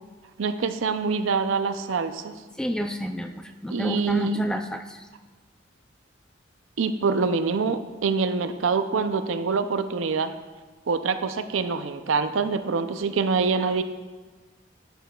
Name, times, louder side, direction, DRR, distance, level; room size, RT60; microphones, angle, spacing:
voice 1, 0.4-2.4 3.7-4.4 6.8-10.3 10.9-13.8, right 4 dB, 85° right, 10 dB, 0.5 m, -25 dB
voice 2, 2.6-5.0, equal, 5° left, 6 dB, 0.3 m, -29 dB
11.0 x 7.9 x 2.3 m, 1.4 s
head